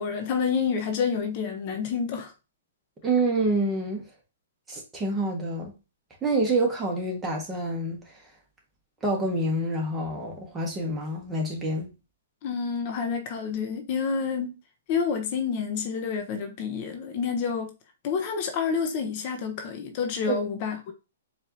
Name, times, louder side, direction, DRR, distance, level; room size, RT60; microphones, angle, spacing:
voice 1, 0.0-2.3 12.4-14.5 14.9-17.7 18.0-20.9, left 6 dB, 45° left, 0.9 m, -28 dB
voice 2, 3.0-4.0 4.7-5.7 6.2-8.1 9.0-11.9 20.3-20.4, right 2 dB, 15° right, 1.3 m, -27 dB
4.7 x 2.7 x 2.8 m
hypercardioid pair, 130°, 0 cm